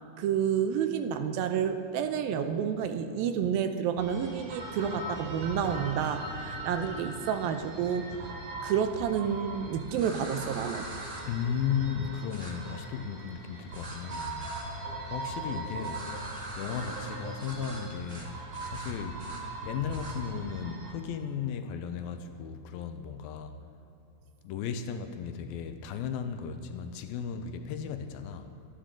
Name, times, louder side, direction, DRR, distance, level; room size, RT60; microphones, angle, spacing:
voice 1, 0.2-8.4 8.6-10.9, right 8 dB, 80° right, 8 dB, 2.5 m, -30 dB
sound 1, 4.0-21.0, right 2 dB, 55° right, 3.6 m, -40 dB
sound 2, 5.6-13.7, left 3 dB, 60° left, 1.9 m, -52 dB
sound 3, 9.9-11.2 12.3-12.5 13.7-14.6 15.8-17.1 17.4-17.8 18.1-18.3 18.5-19.4 19.9-20.1, right 1 dB, 30° right, 1.4 m, -43 dB
voice 2, 11.3-14.8 15.1-16.1 16.6-18.3 18.7-19.2 19.6-23.6 24.4-28.5, left 7 dB, 80° left, 8 dB, 2.5 m, -35 dB
23.5 x 11.5 x 3.8 m, 2.9 s
omnidirectional pair, 4.3 m